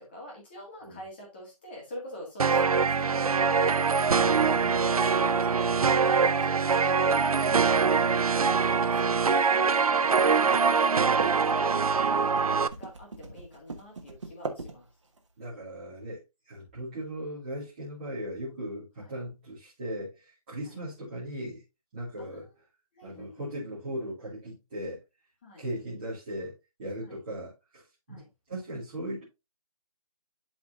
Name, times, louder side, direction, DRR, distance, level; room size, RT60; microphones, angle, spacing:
voice 1, 0.0-3.8 4.7-7.7 8.5-11.7 12.8-14.9 15.7-15.9 19.0-19.1 22.2-22.4 23.0-23.5 25.4-25.6 27.0-27.2 28.1-28.3, equal, 15° left, 2.1 m, -45 dB
sound 1, 2.4-12.7, right 5 dB, 75° right, 0.6 m, -23 dB
voice 2, 4.1-4.9 15.4-21.6 21.9-22.5 23.0-25.0 25.6-29.2, right 1 dB, 15° right, 2.4 m, -38 dB
sound 2, 4.2-15.3, right 3 dB, 55° right, 1.5 m, -42 dB
11.5 x 4.3 x 2.6 m
hypercardioid pair, 175°, 19 cm